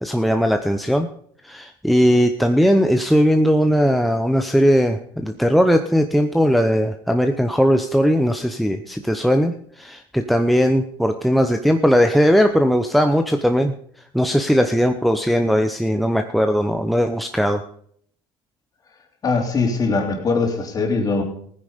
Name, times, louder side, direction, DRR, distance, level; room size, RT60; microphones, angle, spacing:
voice 1, 0.0-1.1 1.4-13.7 14.1-17.6, equal, ahead, 6 dB, 0.8 m, -18 dB
voice 2, 19.2-21.2, left 4 dB, 35° left, 3 dB, 3.3 m, -21 dB
16.0 x 9.7 x 5.1 m, 0.63 s
supercardioid pair, 105°, 11 cm